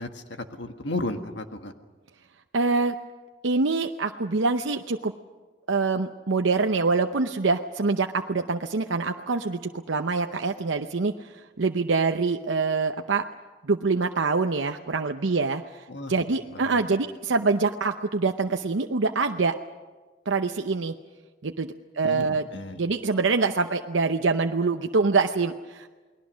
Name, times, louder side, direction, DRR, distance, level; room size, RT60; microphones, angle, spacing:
voice 1, 0.0-1.7 15.9-16.2 16.5-16.8 22.0-22.2 22.5-22.8, left 2 dB, 70° left, 6 dB, 1.6 m, -34 dB
voice 2, 2.5-3.0 3.4-5.1 5.7-13.2 13.6-19.5 20.3-20.9 21.4-22.4 22.8-25.9, right 4 dB, 85° right, 5 dB, 0.8 m, -25 dB
29.0 x 20.5 x 6.3 m, 1.3 s
head